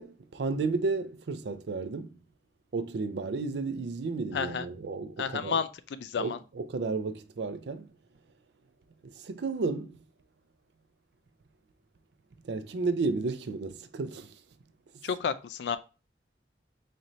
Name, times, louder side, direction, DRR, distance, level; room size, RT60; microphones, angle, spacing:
voice 1, 0.0-2.1 2.7-5.6 6.2-7.9 9.0-10.0 12.4-14.3, right 3 dB, 75° right, 0.4 m, -32 dB
voice 2, 4.3-4.7 5.2-6.4 15.0-15.8, left 6 dB, 80° left, 0.3 m, -31 dB
4.2 x 2.6 x 3.0 m
head